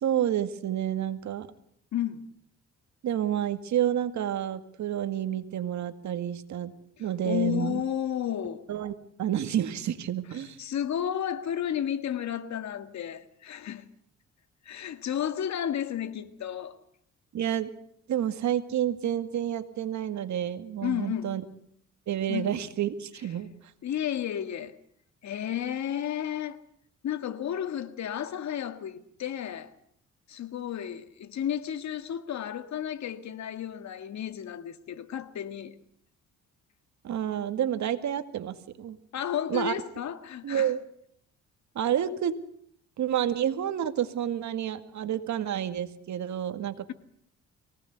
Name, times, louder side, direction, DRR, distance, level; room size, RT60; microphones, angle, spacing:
voice 1, 0.0-1.5 3.0-6.7 7.0-7.8 8.7-10.6 17.3-17.7 18.1-21.4 22.1-23.5 37.0-39.0 39.5-39.8 40.4-40.8 41.8-42.3 43.0-46.9, right 10 dB, 70° right, 2.0 m, -29 dB
voice 2, 1.9-2.2 7.0-8.6 10.6-13.9 14.7-16.8 20.8-21.3 22.3-22.5 23.8-24.8 25.2-26.6 27.0-29.7 30.3-35.8 39.1-40.7, left 10 dB, 65° left, 1.9 m, -32 dB
23.5 x 18.0 x 8.1 m
cardioid pair, 90°, 30 cm